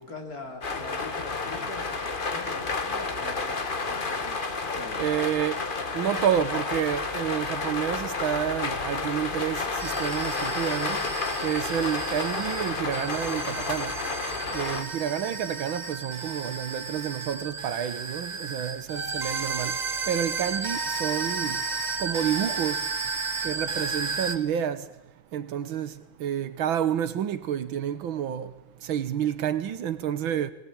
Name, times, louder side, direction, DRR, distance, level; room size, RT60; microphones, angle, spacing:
voice 1, 0.0-3.6 3.9-4.4 4.7-5.0, left 2 dB, 45° left, 3.9 m, -42 dB
sound 1, 0.6-14.8, left 4 dB, 30° left, 1.4 m, -31 dB
voice 2, 5.0-5.6 5.9-11.0 11.4-13.9 14.5-19.7 20.1-21.6 22.0-22.8 23.4-24.8 25.3-25.9 26.2-28.5 28.9-30.5, right 9 dB, 80° right, 1.9 m, -29 dB
sound 2, 9.8-24.4, right 4 dB, 30° right, 0.9 m, -33 dB
21.0 x 21.0 x 8.8 m
omnidirectional pair, 2.2 m